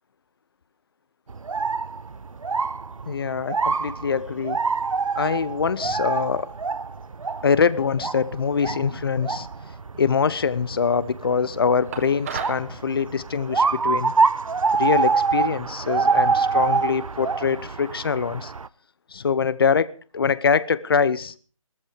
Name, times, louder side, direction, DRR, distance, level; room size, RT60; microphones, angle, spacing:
sound 1, 1.3-18.7, right 4 dB, 70° right, 0.7 m, -26 dB
voice 1, 3.1-4.6 5.1-6.5 7.4-9.5 10.0-14.1 14.8-18.5 19.1-21.3, left 6 dB, 45° left, 0.8 m, -23 dB
sound 2, 11.9-12.7, right 7 dB, 25° right, 2.0 m, -33 dB
17.5 x 14.0 x 5.0 m
figure-of-eight pair, 155°, 18 cm